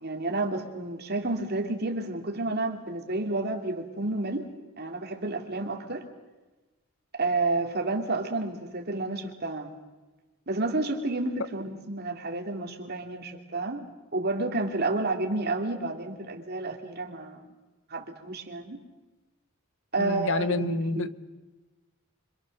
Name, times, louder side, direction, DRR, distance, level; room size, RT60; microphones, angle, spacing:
voice 1, 0.0-4.5 4.8-6.0 7.2-9.7 10.5-13.8 14.1-17.4 17.9-18.8 19.9-21.1, right 2 dB, 50° right, 3 dB, 2.8 m, -30 dB
voice 2, 20.0-21.1, left 3 dB, 65° left, 15 dB, 0.9 m, -29 dB
27.0 x 25.5 x 6.6 m, 1.2 s
head